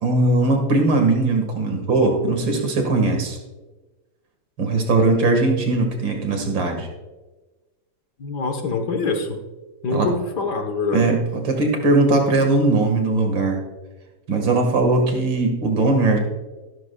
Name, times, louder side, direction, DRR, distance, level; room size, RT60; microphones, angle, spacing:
voice 1, 0.0-3.4 4.6-6.9 9.9-10.1 10.9-13.6 14.3-16.2, right 2 dB, 75° right, 3 dB, 2.5 m, -19 dB
voice 2, 8.2-9.4 9.8-11.0, left 3 dB, 60° left, 5 dB, 1.7 m, -24 dB
15.5 x 12.5 x 2.3 m, 1.2 s
omnidirectional pair, 2.1 m